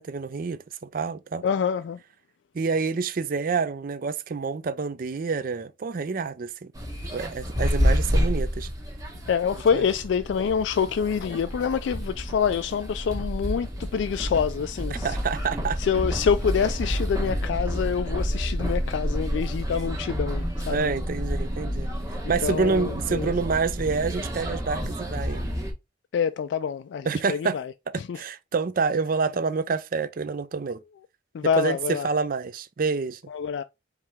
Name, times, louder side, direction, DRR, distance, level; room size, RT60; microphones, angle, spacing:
voice 1, 0.0-1.4 2.5-6.7 7.1-8.7 9.7-9.9 14.9-15.8 20.7-21.9 22.3-25.5 27.0-27.6 27.9-30.8 31.6-33.2, right 4 dB, 50° right, 0.4 m, -28 dB
voice 2, 1.4-2.0 9.3-15.1 15.8-20.9 22.4-23.3 26.1-27.7 28.0-28.2 31.3-32.1 33.3-33.6, left 7 dB, 65° left, 0.3 m, -26 dB
sound 1, 6.7-25.7, equal, 15° right, 1.3 m, -29 dB
4.7 x 3.2 x 3.5 m
head